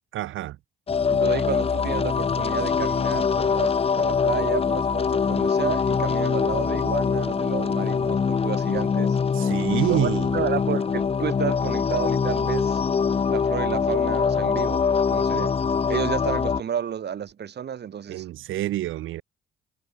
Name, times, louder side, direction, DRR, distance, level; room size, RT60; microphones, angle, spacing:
voice 1, 0.1-0.6 9.3-10.3 18.1-19.2, right 15 dB, 85° right, 6.2 m, -27 dB
sound 1, 0.9-16.6, left 6 dB, 30° left, 0.7 m, -23 dB
voice 2, 1.1-9.2 9.9-12.8 13.3-15.5 15.9-18.2, right 8 dB, 55° right, 7.5 m, -31 dB
cardioid pair, 90°, 20 cm